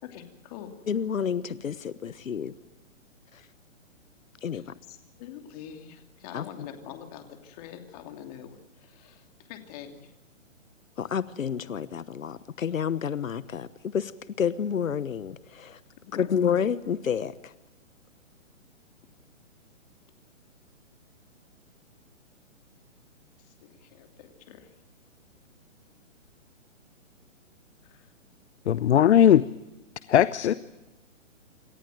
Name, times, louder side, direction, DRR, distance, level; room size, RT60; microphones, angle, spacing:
voice 1, 0.0-0.7 4.5-4.6 4.9-10.1 16.1-16.3 23.6-24.7 27.8-28.1 30.4-30.6, left 10 dB, 30° left, 6 dB, 2.8 m, -44 dB
voice 2, 0.9-2.5 3.3-3.4 4.4-4.7 6.3-6.7 11.0-14.1 14.4-15.8 16.1-17.5, left 7 dB, 90° left, 16 dB, 1.2 m, -29 dB
voice 3, 28.7-29.4 30.1-30.5, left 10 dB, 60° left, 16 dB, 0.8 m, -18 dB
27.5 x 14.0 x 9.3 m, 1.1 s
hypercardioid pair, 155°, 39 cm